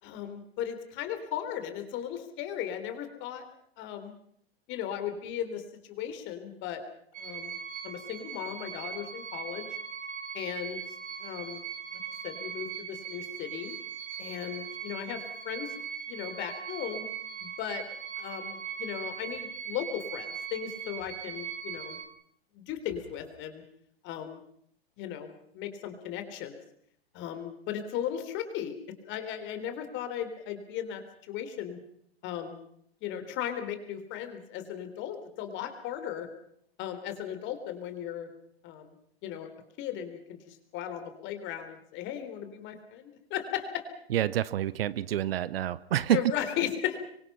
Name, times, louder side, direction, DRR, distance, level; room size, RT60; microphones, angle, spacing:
voice 1, 0.0-3.5 3.8-4.2 4.7-6.8 7.2-7.6 7.8-9.7 10.3-11.6 12.2-13.7 14.2-15.7 16.1-17.1 17.4-17.8 18.2-22.0 22.5-23.6 24.0-24.4 25.0-26.6 27.1-28.7 29.0-31.8 32.2-32.6 33.0-36.3 36.8-38.3 38.6-39.0 39.2-39.5 39.8-43.8 46.1-47.0, left 10 dB, 35° left, 3.8 m, -36 dB
sound 1, 7.1-22.1, right 7 dB, 25° right, 3.3 m, -40 dB
voice 2, 44.1-46.2, right 12 dB, 65° right, 1.0 m, -28 dB
26.5 x 24.0 x 5.7 m
hypercardioid pair, 120°, 32 cm